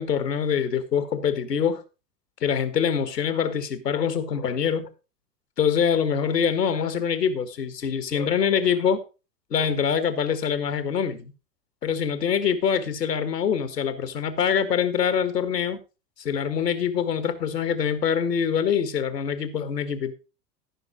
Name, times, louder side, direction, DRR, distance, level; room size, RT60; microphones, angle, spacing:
voice 1, 0.0-1.8 2.4-4.9 5.6-9.0 9.5-11.3 11.8-15.8 16.2-20.1, left 7 dB, 75° left, 1.6 m, -24 dB
13.5 x 6.0 x 4.9 m
figure-of-eight pair, 90°, 49 cm